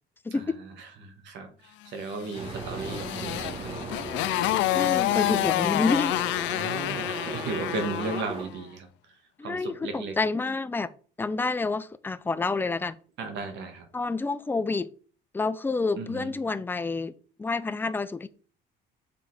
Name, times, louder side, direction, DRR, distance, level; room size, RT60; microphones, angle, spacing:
voice 1, 0.3-3.8 6.5-10.2 13.2-13.9 16.0-16.3, right 3 dB, 65° right, 1.8 m, -36 dB
Motorcycle, 2.3-8.3, left 17 dB, 75° left, 0.4 m, -28 dB
sound 1, 2.3-8.5, right 3 dB, 30° right, 1.4 m, -37 dB
voice 2, 4.7-6.3 9.4-10.9 11.2-13.0 13.9-14.9 15.3-17.1 17.4-18.3, left 3 dB, 10° left, 0.4 m, -28 dB
6.9 x 3.9 x 4.9 m
cardioid pair, 125°, 19 cm